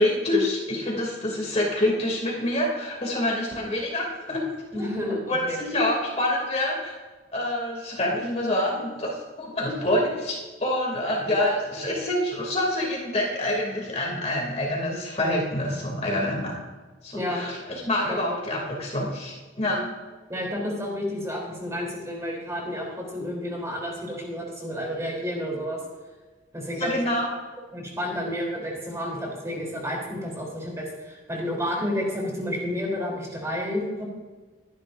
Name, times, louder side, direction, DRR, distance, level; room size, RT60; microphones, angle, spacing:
voice 1, 0.0-4.8 5.2-6.9 7.3-16.6 17.0-19.9 26.8-27.3, left 1 dB, 35° left, -2 dB, 2.8 m, -26 dB
voice 2, 4.7-5.6 17.1-17.5 18.1-18.2 20.3-25.8 26.5-26.9 27.7-34.0, left 1 dB, 15° right, -2 dB, 3.5 m, -30 dB
23.0 x 11.0 x 2.6 m, 1.3 s
head